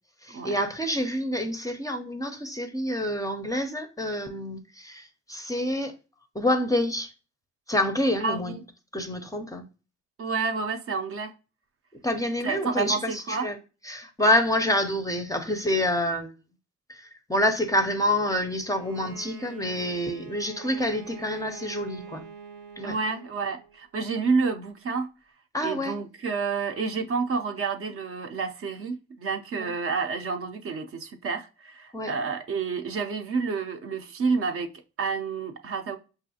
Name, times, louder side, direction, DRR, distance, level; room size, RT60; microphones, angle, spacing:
voice 1, 0.2-5.9 6.3-7.1 7.7-8.5 8.9-9.7 12.0-13.6 13.8-16.3 16.9-22.2 22.8-23.0 25.5-25.9 29.6-29.7 31.9-32.1, left 1 dB, 10° left, 0.5 m, -27 dB
voice 2, 8.2-8.6 10.2-11.3 12.4-13.5 22.8-25.1 25.6-34.7 35.0-36.0, right 4 dB, 50° right, 0.5 m, -29 dB
Bowed string instrument, 18.6-23.8, right 6 dB, 75° right, 0.8 m, -44 dB
5.3 x 2.4 x 2.7 m
cardioid pair, 90°, 30 cm